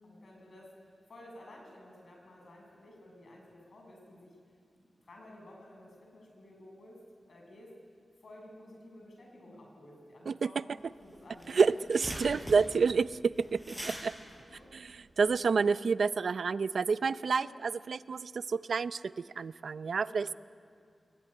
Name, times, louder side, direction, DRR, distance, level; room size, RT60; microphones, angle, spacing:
voice 1, 0.0-7.0 7.3-7.7 8.2-12.6 14.2-14.7 17.3-17.6 19.9-20.3, left 1 dB, 60° left, 0 dB, 7.2 m, -53 dB
sound 1, 10.9-11.0 11.2-15.5, right 1 dB, ahead, 4.8 m, -43 dB
voice 2, 11.5-14.1 14.7-14.9 15.2-20.3, right 5 dB, 65° right, 15 dB, 0.5 m, -29 dB
22.0 x 21.5 x 10.0 m, 2.4 s
wide cardioid pair, 155°, 0 cm